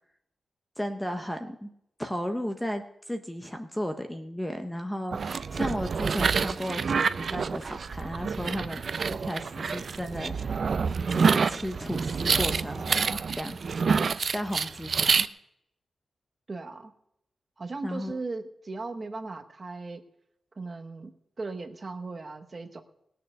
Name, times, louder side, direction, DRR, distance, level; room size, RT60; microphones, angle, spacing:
voice 1, 0.8-1.7 2.0-5.2 5.5-8.8 9.1-10.6 11.1-13.6 14.3-15.1 17.8-18.2, equal, 5° left, 6 dB, 0.7 m, -34 dB
sound 1, 5.1-15.3, right 5 dB, 45° right, 0.4 m, -27 dB
voice 2, 16.5-16.9 17.6-20.0 20.6-21.1 21.4-22.8, right 3 dB, 30° right, 6 dB, 1.0 m, -37 dB
19.0 x 6.7 x 6.4 m, 0.78 s
wide cardioid pair, 180°, 0 cm